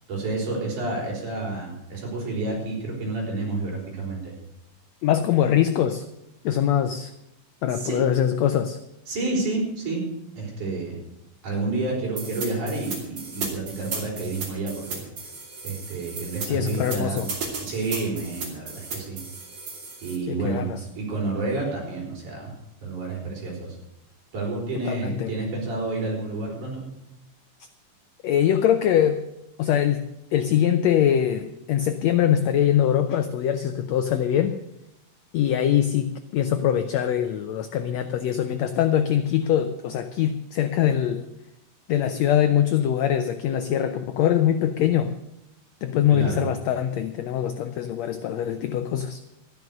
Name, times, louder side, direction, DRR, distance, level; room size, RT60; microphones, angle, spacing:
voice 1, 0.1-4.3 7.7-8.0 9.1-10.0 10.4-11.0 11.4-15.0 15.6-17.3 17.6-19.2 20.0-22.5 22.8-23.8 24.3-26.8 46.1-46.5, right 3 dB, 65° right, -2 dB, 6.1 m, -29 dB
voice 2, 5.0-6.0 6.4-7.1 7.6-8.8 16.5-17.3 20.3-20.8 24.9-25.3 28.2-29.2 29.6-30.1 30.3-34.5 35.3-41.2 41.9-45.2 45.8-49.2, left 10 dB, 85° left, 9 dB, 1.5 m, -23 dB
sound 1, 12.2-20.2, right 4 dB, 45° right, 3.7 m, -35 dB
13.0 x 11.0 x 6.5 m, 0.86 s
omnidirectional pair, 3.9 m